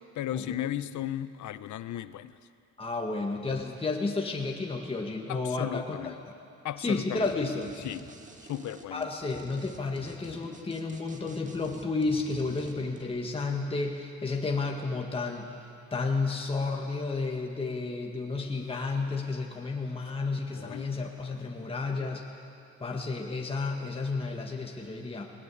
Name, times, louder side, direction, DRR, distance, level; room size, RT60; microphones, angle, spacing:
voice 1, 0.2-2.4 5.3-6.2 6.6-7.3 7.8-8.1 8.5-9.1 20.5-20.9, left 12 dB, 70° left, 14 dB, 0.7 m, -35 dB
voice 2, 2.8-6.1 6.8-7.8 8.9-15.5 15.9-22.2 22.8-25.3, left 3 dB, 20° left, 1 dB, 1.8 m, -32 dB
sound 1, 7.2-7.3 7.6-13.0, right 2 dB, 25° right, 1.7 m, -49 dB
20.5 x 18.0 x 8.5 m, 2.6 s
cardioid pair, 120°, 31 cm